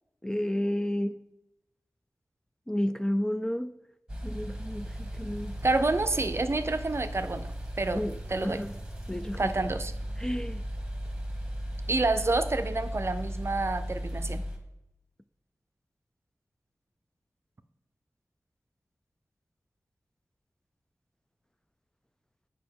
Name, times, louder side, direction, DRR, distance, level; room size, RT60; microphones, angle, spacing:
voice 1, 0.2-1.1 2.7-3.7 4.2-5.6 7.9-8.1 8.4-8.7 9.1-9.5 10.2-10.6, left 1 dB, 10° left, 0.3 m, -31 dB
sound 1, 4.1-14.6, equal, 10° right, 1.4 m, -36 dB
voice 2, 5.6-7.5 7.8-8.0 8.3-8.6 9.4-9.9 11.9-14.4, right 2 dB, 45° right, 0.6 m, -28 dB
7.3 x 5.0 x 4.6 m
cardioid pair, 45°, 6 cm